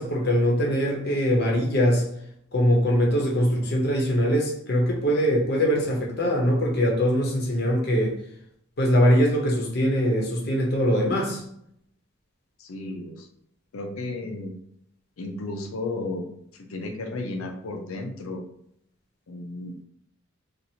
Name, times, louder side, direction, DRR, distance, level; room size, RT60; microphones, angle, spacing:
voice 1, 0.0-2.1 2.5-8.1 8.8-11.4, equal, 50° left, -1 dB, 0.7 m, -22 dB
voice 2, 12.6-13.3 13.7-14.5 15.2-16.2 16.7-18.4 19.3-19.7, left 2 dB, 85° left, 4 dB, 0.6 m, -33 dB
2.8 x 2.5 x 2.8 m, 0.72 s
head